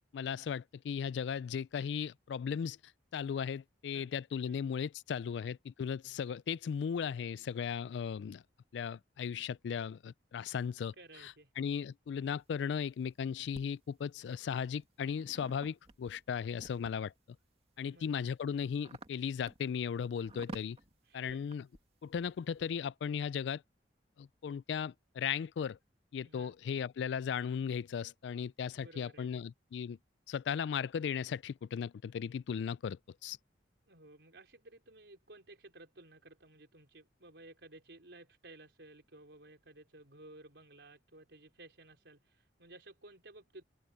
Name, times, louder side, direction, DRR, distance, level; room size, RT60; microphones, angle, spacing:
voice 1, 0.1-2.8 3.1-8.4 8.7-10.9 11.2-17.1 17.8-20.8 21.1-21.6 22.0-23.6 24.2-25.8 26.1-30.0 30.3-33.4, left 7 dB, 75° left, 0.3 m, -36 dB
voice 2, 11.0-11.5 17.8-18.3 21.0-21.5 26.2-26.5 28.7-29.4 33.9-43.6, right 2 dB, 75° right, 4.3 m, -56 dB
sound 1, 12.4-13.6 14.3-17.2 17.7-22.8, right 2 dB, 35° right, 2.0 m, -52 dB
head